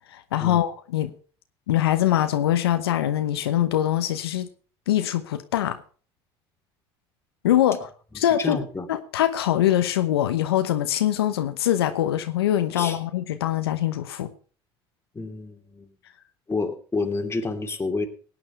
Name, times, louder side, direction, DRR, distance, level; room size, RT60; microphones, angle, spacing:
voice 1, 0.1-1.1 1.7-4.5 4.9-5.8 7.4-7.9 8.1-8.6 8.9-14.3, left 12 dB, 90° left, 1.0 m, -23 dB
voice 2, 8.4-8.9 12.7-13.0 15.1-15.9 16.5-18.1, left 3 dB, 20° left, 3.0 m, -29 dB
17.5 x 9.4 x 4.5 m
hypercardioid pair, 70°, 13 cm